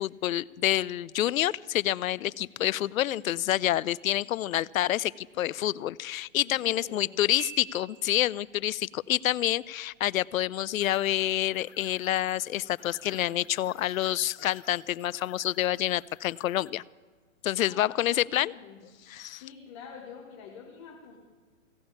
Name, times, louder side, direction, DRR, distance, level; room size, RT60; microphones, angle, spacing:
voice 1, 0.0-16.8 17.4-18.5 19.1-19.4, left 13 dB, 80° left, 22 dB, 0.5 m, -28 dB
voice 2, 6.4-7.2 17.6-18.9 19.3-21.2, left 6 dB, 20° left, 0 dB, 1.1 m, -47 dB
Piano, 7.4-8.5, right 11 dB, 65° right, 0.9 m, -44 dB
sound 1, 10.8-16.7, left 10 dB, 50° left, 0.9 m, -55 dB
16.0 x 8.8 x 8.6 m, 1.5 s
hypercardioid pair, 175°, 41 cm